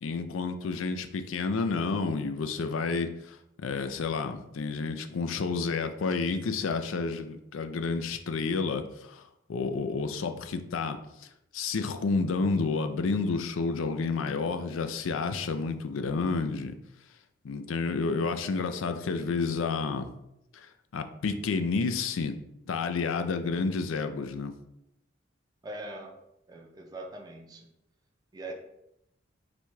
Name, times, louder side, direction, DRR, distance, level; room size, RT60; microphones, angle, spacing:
voice 1, 0.0-11.0 11.5-16.7 17.4-20.1 20.5-20.7 20.9-22.3 22.7-24.5, left 4 dB, 90° left, 8 dB, 0.4 m, -30 dB
voice 2, 25.6-26.2 26.5-27.7 28.3-28.5, right 2 dB, 20° right, 1 dB, 0.5 m, -41 dB
4.2 x 2.2 x 4.6 m, 0.81 s
head